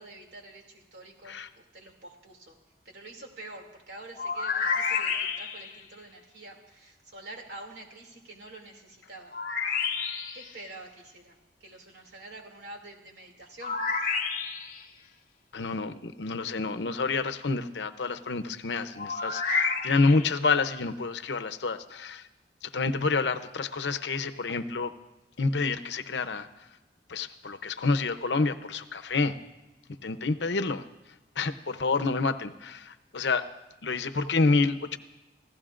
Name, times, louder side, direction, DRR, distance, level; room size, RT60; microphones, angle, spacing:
voice 1, 0.0-2.6 2.8-9.4 10.3-13.8, right 2 dB, 75° right, 2 dB, 2.6 m, -47 dB
sound 1, 4.1-5.8 9.3-10.5 13.6-14.8 19.0-20.3, left 5 dB, 50° left, 1.1 m, -30 dB
voice 2, 15.5-22.2 22.6-24.9 25.4-26.5 27.1-29.4 30.0-30.8 31.4-33.5 33.8-35.0, left 3 dB, 85° left, 10 dB, 0.7 m, -28 dB
29.5 x 15.5 x 2.5 m, 1.1 s
head